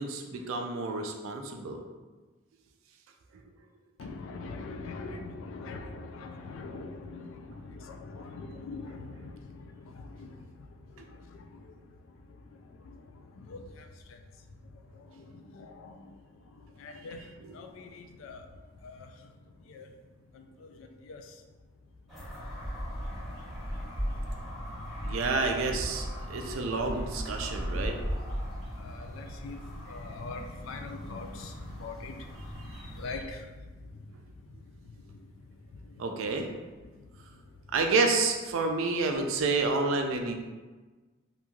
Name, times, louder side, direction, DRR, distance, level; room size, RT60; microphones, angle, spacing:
voice 1, 0.0-1.8 11.0-11.1 17.2-17.6 25.0-28.0 36.0-36.5 37.7-40.4, right 3 dB, 90° right, 4 dB, 0.4 m, -29 dB
voice 2, 4.0-7.3 8.0-9.0 9.2-9.3 13.5-13.6 16.8-17.2 17.6-17.7 18.2-18.4 19.8-19.9 21.1-21.2 29.2-29.6 29.9-31.3 31.8-32.1 33.0-33.2, left 3 dB, 80° left, 5 dB, 0.3 m, -40 dB
sound 1, 22.1-33.2, equal, ahead, 0.9 m, -37 dB
3.0 x 2.5 x 2.3 m, 1.3 s
head